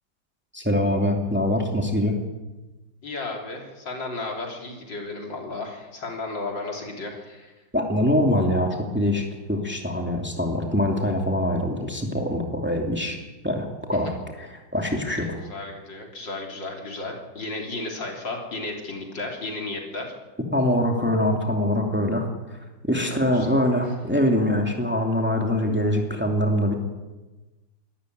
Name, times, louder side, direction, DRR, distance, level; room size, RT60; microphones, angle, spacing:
voice 1, 0.5-2.2 7.7-13.2 13.4-15.4 20.5-22.3 22.8-26.7, left 1 dB, 5° right, 1 dB, 2.6 m, -24 dB
voice 2, 3.0-7.5 15.2-20.1 23.0-23.8, left 3 dB, 75° left, 1 dB, 4.2 m, -34 dB
22.5 x 13.0 x 9.4 m, 1.2 s
omnidirectional pair, 2.0 m